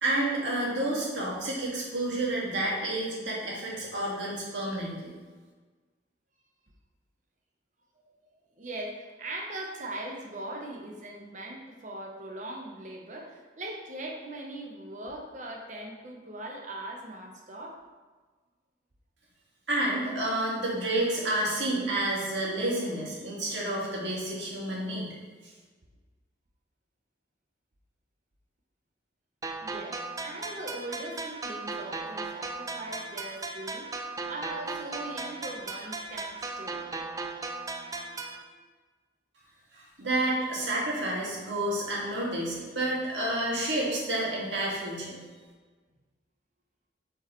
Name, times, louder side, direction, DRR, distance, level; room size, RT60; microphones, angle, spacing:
voice 1, 0.0-5.1 19.7-25.1 39.7-45.2, right 1 dB, 85° right, -5 dB, 1.9 m, -30 dB
voice 2, 8.1-17.8 29.6-33.9 34.3-36.8, right 1 dB, 45° right, 0 dB, 0.9 m, -40 dB
sound 1, 29.4-38.4, right 3 dB, 20° right, 0.4 m, -37 dB
7.7 x 4.5 x 3.1 m, 1.4 s
head